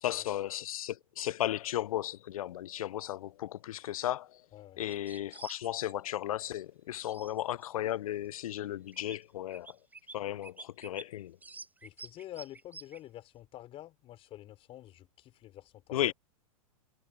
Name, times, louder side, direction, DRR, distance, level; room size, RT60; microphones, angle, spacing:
voice 1, 0.0-4.4 4.8-9.8 10.1-11.4 15.9-16.1, left 13 dB, 75° left, 0.6 m, -35 dB
voice 2, 4.5-4.8 11.8-16.1, left 13 dB, 30° left, 3.9 m, -48 dB
sound 1, 4.9-5.9 7.0-7.9 8.6-8.7 8.9-9.2 9.5-10.2 10.4-11.0 11.4-13.0, right 3 dB, 10° right, 7.3 m, -49 dB
hypercardioid pair, 130°, 18 cm